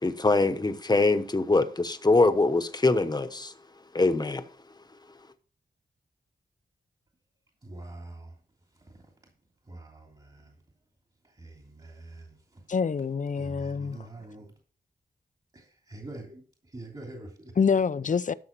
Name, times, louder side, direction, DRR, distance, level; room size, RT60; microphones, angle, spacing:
voice 1, 0.0-3.5 3.9-4.4, left 3 dB, 25° left, 1.1 m, -23 dB
voice 2, 7.6-8.3 8.8-9.1 9.7-10.6 11.2-12.6 13.4-14.6 15.5-17.6, right 2 dB, 30° right, 2.8 m, -45 dB
voice 3, 12.7-14.0 17.6-18.3, left 6 dB, 50° left, 0.6 m, -26 dB
12.5 x 6.3 x 4.6 m
cardioid pair, 75°, 17 cm